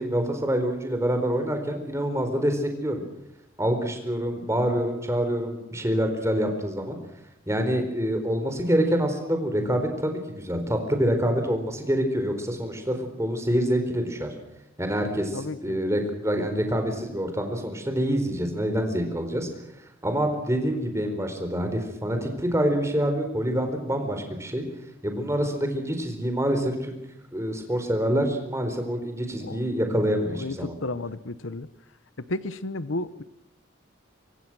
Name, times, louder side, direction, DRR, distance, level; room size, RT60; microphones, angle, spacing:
voice 1, 0.0-3.0 3.6-7.0 7.5-14.3 14.8-19.5 20.0-24.6 25.0-26.9 27.3-30.7, equal, 15° right, 6 dB, 4.4 m, -26 dB
voice 2, 15.3-15.8 29.4-29.6 30.3-31.7 32.3-33.2, left 2 dB, 75° left, 15 dB, 1.0 m, -32 dB
25.5 x 23.5 x 6.2 m, 0.85 s
head